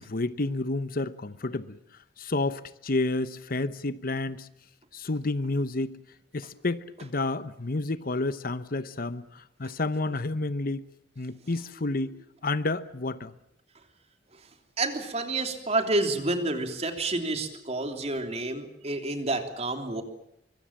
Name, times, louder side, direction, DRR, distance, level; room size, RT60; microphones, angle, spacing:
voice 1, 0.0-1.8 2.2-4.5 4.9-6.0 6.3-10.8 11.2-13.3, left 2 dB, 55° left, 1.0 m, -30 dB
voice 2, 14.8-20.0, right 2 dB, 35° right, 3.2 m, -29 dB
24.0 x 24.0 x 7.3 m
head